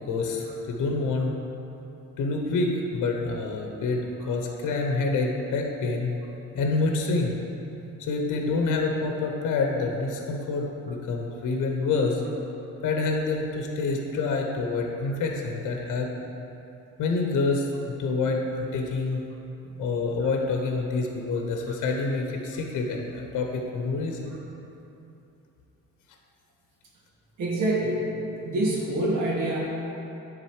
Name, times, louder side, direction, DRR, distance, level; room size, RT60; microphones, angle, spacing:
voice 1, 0.0-1.3 2.2-4.0 4.3-6.1 6.5-7.4 8.0-12.2 12.8-16.1 17.0-19.2 19.8-24.3, left 3 dB, 70° left, 2 dB, 0.8 m, -27 dB
voice 2, 27.4-28.1 28.4-29.6, right 1 dB, 75° right, -4 dB, 1.7 m, -26 dB
9.7 x 3.8 x 4.8 m, 2.9 s
cardioid pair, 145°, 31 cm